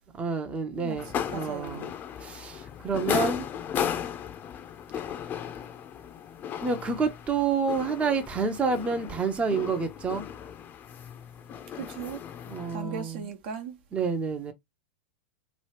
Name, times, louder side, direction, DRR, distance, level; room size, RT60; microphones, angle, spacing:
voice 1, 0.2-1.9 2.2-3.5 6.6-10.3 12.5-13.2 13.9-14.5, right 5 dB, 20° right, 0.6 m, -29 dB
sound 1, 1.0-12.8, left 9 dB, 30° left, 0.5 m, -35 dB
voice 2, 1.3-1.8 11.7-12.2 12.7-13.8, right 6 dB, 60° right, 0.8 m, -37 dB
3.0 x 2.3 x 3.2 m
hypercardioid pair, 105°, 6 cm